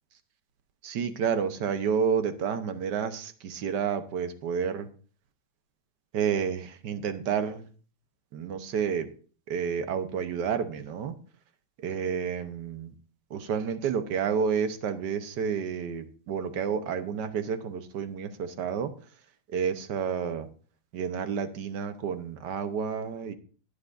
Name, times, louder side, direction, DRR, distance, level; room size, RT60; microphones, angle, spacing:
voice 1, 0.8-4.9 6.1-7.7 8.3-9.1 9.5-11.1 11.8-12.9 13.3-18.9 19.5-20.5 20.9-23.3, right 7 dB, 65° right, 9 dB, 1.5 m, -30 dB
20.5 x 7.1 x 2.6 m, 0.41 s
omnidirectional pair, 2.1 m